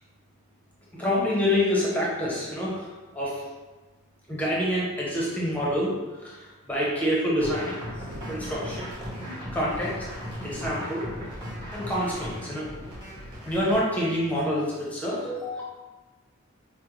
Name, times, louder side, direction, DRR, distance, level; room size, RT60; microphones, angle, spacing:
voice 1, 1.0-2.9 3.2-3.3 4.3-5.9 6.2-6.3 6.7-7.7 8.3-8.9 9.5-9.9 10.4-11.1 11.7-12.7 13.4-15.6, equal, 10° left, -6 dB, 0.7 m, -26 dB
sound 1, 7.4-13.8, equal, 20° right, 0.9 m, -37 dB
5.0 x 2.1 x 3.0 m, 1.2 s
head